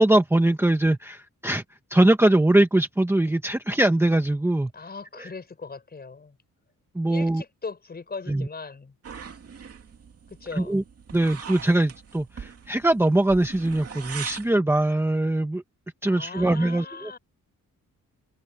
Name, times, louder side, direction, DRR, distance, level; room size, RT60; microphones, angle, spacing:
voice 1, 0.0-1.6 1.9-4.7 5.2-5.3 6.9-7.4 8.3-8.5 10.5-10.8 11.1-15.6 16.0-17.1, right 1 dB, 5° right, 1.1 m, -22 dB
voice 2, 4.7-6.4 7.0-8.9 10.4-10.8 16.1-17.2, left 4 dB, 30° left, 5.4 m, -39 dB
sound 1, 9.0-14.5, right 6 dB, 50° right, 2.6 m, -41 dB
wide cardioid pair, 145°, 32 cm